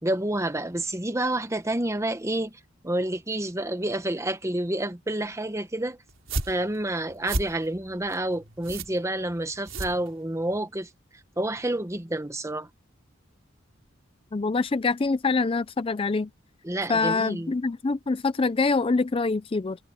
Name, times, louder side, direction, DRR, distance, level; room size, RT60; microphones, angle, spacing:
voice 1, 0.0-2.5 2.8-6.0 6.5-10.9 11.4-12.7 16.6-17.5, right 1 dB, 15° right, 1.1 m, -29 dB
Rope Knots - Nudos Cuerda, 6.1-10.6, right 2 dB, 75° right, 3.6 m, -34 dB
voice 2, 14.3-16.3 16.9-19.8, left 3 dB, 25° left, 0.4 m, -25 dB
head